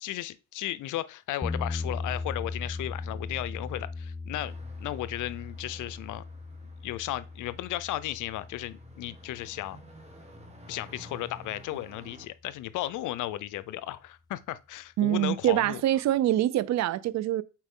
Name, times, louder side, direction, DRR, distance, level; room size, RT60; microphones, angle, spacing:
voice 1, 0.0-6.2 6.8-9.8 10.7-15.8, left 14 dB, 80° left, 0.6 m, -35 dB
sound 1, 1.4-11.4, left 3 dB, 15° left, 0.3 m, -39 dB
sound 2, 4.4-12.3, equal, 20° right, 1.7 m, -52 dB
voice 2, 15.0-17.4, right 13 dB, 65° right, 0.5 m, -25 dB
7.4 x 4.5 x 3.7 m
cardioid pair, 90°, 30 cm